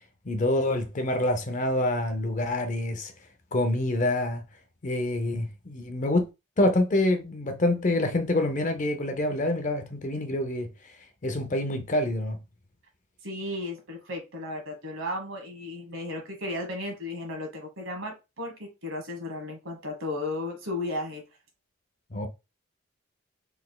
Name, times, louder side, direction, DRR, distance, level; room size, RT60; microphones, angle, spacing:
voice 1, 0.3-3.1 3.5-4.5 4.8-6.3 6.6-10.9 11.2-12.4 22.1-22.3, left 1 dB, 35° left, 0.5 m, -26 dB
voice 2, 13.2-21.2, left 2 dB, 70° right, 1.3 m, -34 dB
4.0 x 3.4 x 2.2 m
head